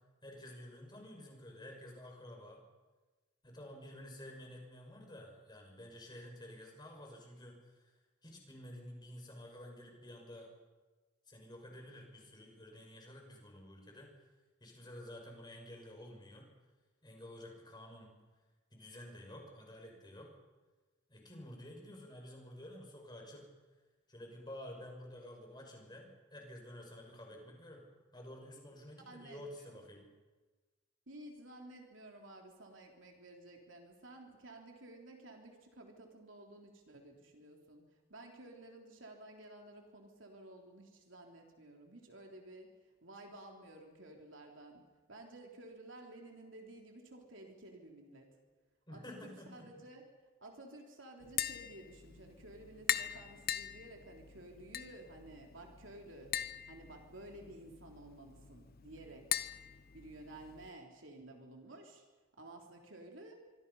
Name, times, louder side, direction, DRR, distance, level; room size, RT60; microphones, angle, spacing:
voice 1, 0.2-2.6 3.4-10.5 11.3-14.1 14.6-16.5 17.0-18.1 18.7-20.3 21.1-23.5 24.1-30.1 48.9-49.8, left 1 dB, 20° left, 1 dB, 6.0 m, -51 dB
voice 2, 29.0-29.8 31.1-37.8 38.1-42.7 43.0-44.8 45.1-48.4 48.9-50.1 50.4-56.4 56.7-59.3 59.9-62.0 62.4-63.4, right 1 dB, 70° right, 1 dB, 3.6 m, -53 dB
Tap, 51.2-60.7, left 11 dB, 50° left, 0.8 m, -42 dB
26.5 x 24.0 x 5.6 m, 1.3 s
head